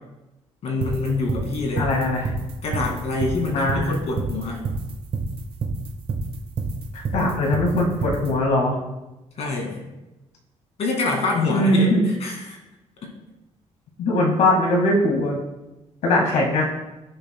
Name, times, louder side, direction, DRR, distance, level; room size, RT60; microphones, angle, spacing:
voice 1, 0.6-1.9 2.6-4.6 9.4-9.8 10.8-12.6, left 3 dB, 60° left, 0 dB, 2.2 m, -26 dB
sound 1, 0.8-8.3, right 4 dB, 50° right, 1.2 m, -27 dB
voice 2, 1.8-2.3 3.5-3.9 7.1-8.8 11.5-12.0 14.0-15.4 16.0-16.7, left 1 dB, 75° left, -2 dB, 1.9 m, -20 dB
15.5 x 7.0 x 2.3 m, 1.0 s
cardioid pair, 140°, 12 cm